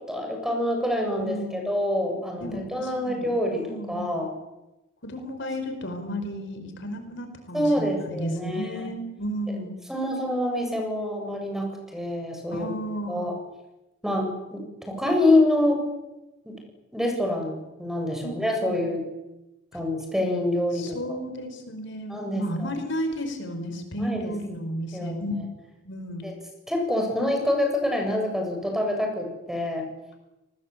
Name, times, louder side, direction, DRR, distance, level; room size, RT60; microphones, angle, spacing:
voice 1, 0.1-4.3 7.5-8.9 9.9-12.7 13.1-13.3 14.0-15.8 16.5-16.6 16.9-19.0 19.7-21.0 22.1-22.7 24.0-24.3 24.9-25.2 26.2-26.3 26.7-29.9, left 1 dB, ahead, 2 dB, 7.6 m, -26 dB
voice 2, 1.2-1.7 2.4-4.3 5.0-9.8 12.5-13.2 18.2-18.3 18.6-18.8 20.7-25.3 25.8-26.2, equal, 65° left, 7 dB, 5.0 m, -33 dB
29.5 x 20.0 x 8.6 m, 0.98 s
head